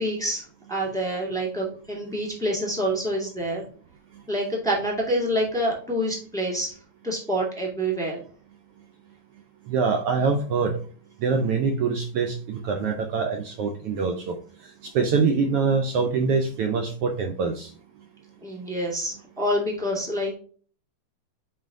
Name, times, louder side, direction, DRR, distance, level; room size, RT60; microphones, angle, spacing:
voice 1, 0.0-3.6 4.3-6.7 7.0-8.2 18.4-20.3, equal, ahead, -2 dB, 1.5 m, -27 dB
voice 2, 9.7-10.8 11.2-14.4 14.6-17.7, right 5 dB, 90° right, 4 dB, 1.2 m, -24 dB
6.1 x 4.5 x 3.6 m, 0.43 s
omnidirectional pair, 3.5 m